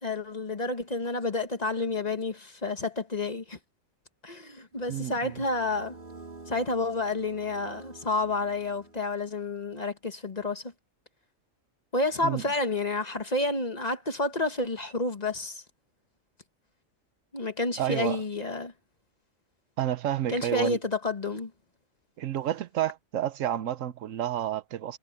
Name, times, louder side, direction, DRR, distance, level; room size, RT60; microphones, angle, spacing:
voice 1, 0.0-3.6 4.2-6.0 6.5-10.7 11.9-15.6 17.3-18.7 20.3-21.5, left 2 dB, 30° left, 1.4 m, -30 dB
sound 1, 4.7-9.4, right 3 dB, 40° right, 3.2 m, -49 dB
voice 2, 4.9-5.3 12.2-12.4 17.8-18.2 19.8-20.8 22.2-25.0, right 11 dB, 75° right, 1.0 m, -30 dB
omnidirectional pair, 1.4 m